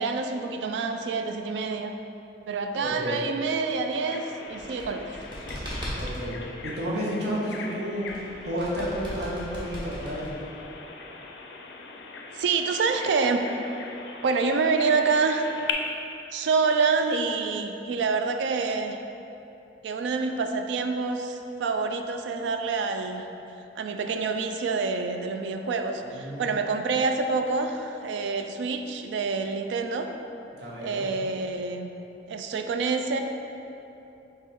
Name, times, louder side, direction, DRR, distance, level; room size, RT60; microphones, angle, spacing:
voice 1, 0.0-1.9 2.5-5.2 12.3-13.4 14.2-15.5 16.3-19.0 19.8-23.3 23.8-30.1 30.8-31.9 32.3-33.2, right 4 dB, 85° right, 6 dB, 0.3 m, -27 dB
voice 2, 2.8-3.2 6.0-8.1 8.4-10.3 26.1-26.5 30.5-31.1, equal, 65° right, -5 dB, 0.9 m, -31 dB
Bird vocalization bird call bird song, 4.0-15.7, left 5 dB, 75° left, 0.4 m, -41 dB
sound 1, 4.5-6.3 8.1-10.6, equal, 25° right, 1.2 m, -37 dB
3.4 x 3.2 x 4.6 m, 2.9 s
head